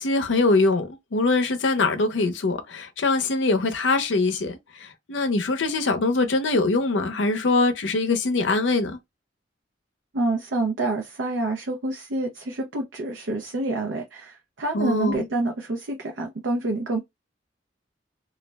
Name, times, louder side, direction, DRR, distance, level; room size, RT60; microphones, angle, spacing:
voice 1, 0.0-9.0 14.7-15.3, left 3 dB, 85° left, 0.6 m, -23 dB
voice 2, 10.1-17.0, right 2 dB, 85° right, 0.5 m, -27 dB
2.4 x 2.1 x 3.3 m
head